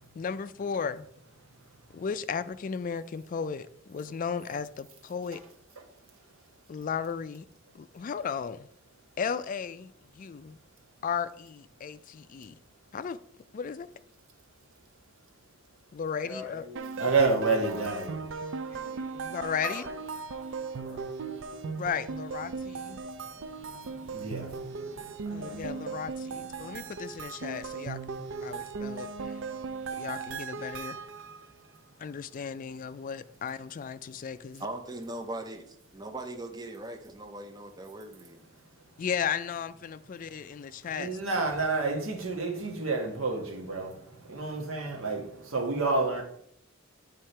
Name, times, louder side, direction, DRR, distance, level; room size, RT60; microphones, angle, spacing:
voice 1, 0.1-1.1 1.9-5.4 6.7-7.5 7.7-8.7 9.2-10.6 11.0-12.6 12.9-13.2 13.5-13.9 15.9-16.6 19.2-19.8 21.7-23.0 25.3-28.0 28.4-29.4 30.0-31.0 32.0-34.7 39.0-41.1, left 6 dB, 40° left, 0.3 m, -35 dB
voice 2, 16.2-18.2 18.7-19.2 19.6-20.0 20.7-21.0, left 2 dB, 10° left, 2.5 m, -44 dB
sound 1, 16.8-31.5, right 5 dB, 65° right, 0.4 m, -38 dB
voice 3, 17.0-18.1 24.1-24.5 25.3-25.6 40.9-43.9 44.3-45.2 45.5-46.2, right 3 dB, 80° right, 1.5 m, -29 dB
voice 4, 34.6-38.4, right 1 dB, 20° right, 0.7 m, -40 dB
8.3 x 3.7 x 4.4 m
head